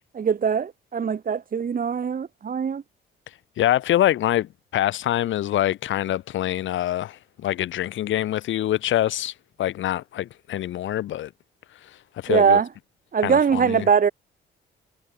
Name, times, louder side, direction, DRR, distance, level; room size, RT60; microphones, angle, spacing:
voice 1, 0.1-2.8 12.3-12.7 13.1-14.1, right 6 dB, 45° right, 3.5 m, -21 dB
voice 2, 3.6-11.3 11.8-12.6 13.2-13.9, left 13 dB, 75° left, 2.1 m, -25 dB
cardioid pair, 90°, 20 cm